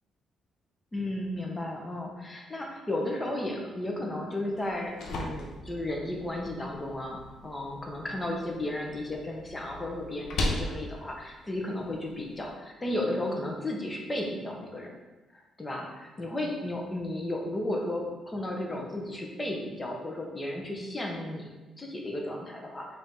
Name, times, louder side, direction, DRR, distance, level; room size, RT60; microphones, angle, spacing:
voice 1, 0.9-14.9 15.3-21.4 21.8-22.9, left 1 dB, 20° left, 0 dB, 0.9 m, -34 dB
sound 1, 4.6-12.5, left 1 dB, 70° left, 0.7 m, -38 dB
5.1 x 2.8 x 3.7 m, 1.1 s
cardioid pair, 90°, 0 cm